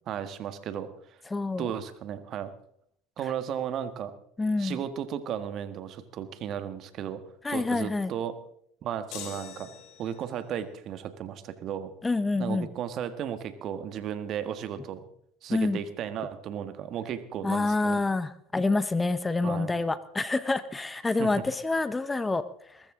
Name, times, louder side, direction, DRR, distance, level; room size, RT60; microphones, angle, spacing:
voice 1, 0.1-0.9 1.6-2.5 3.2-4.1 4.6-7.2 7.5-8.4 8.8-9.7 10.0-11.9 12.4-15.1 15.4-18.0 19.4-19.7 21.2-21.3, right 9 dB, 50° right, 11 dB, 1.5 m, -34 dB
voice 2, 1.3-1.7 4.4-4.8 7.4-8.1 12.0-12.7 15.5-15.8 17.4-22.4, left 3 dB, 15° left, 14 dB, 0.9 m, -27 dB
sound 1, 9.1-10.4, left 8 dB, 60° left, 3.2 m, -43 dB
21.0 x 13.5 x 3.8 m, 0.69 s
hypercardioid pair, 90°, 0 cm